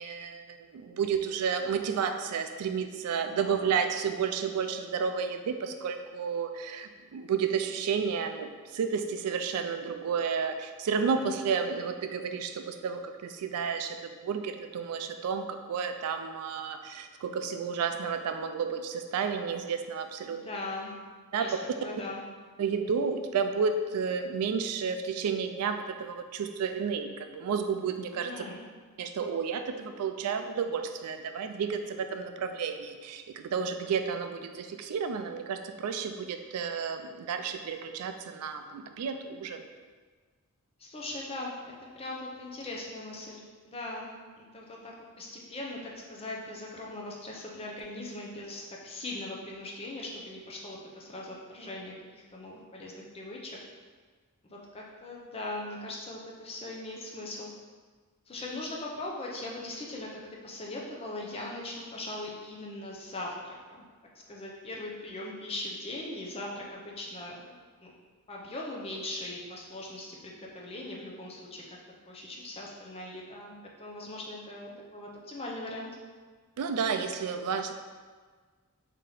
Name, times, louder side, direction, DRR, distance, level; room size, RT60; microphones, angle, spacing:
voice 1, 0.0-20.4 21.3-21.6 22.6-28.4 29.0-39.6 76.6-77.7, right 6 dB, 80° right, 7 dB, 0.3 m, -31 dB
voice 2, 3.2-3.5 11.0-11.3 20.2-20.9 21.3-21.5 21.8-22.2 28.1-28.7 40.8-53.6 54.4-57.5 58.3-63.9 64.3-67.5 67.8-67.9 68.3-71.8 72.1-73.5 73.8-75.9, left 2 dB, 25° left, -2 dB, 0.5 m, -40 dB
3.4 x 2.8 x 3.8 m, 1.5 s
head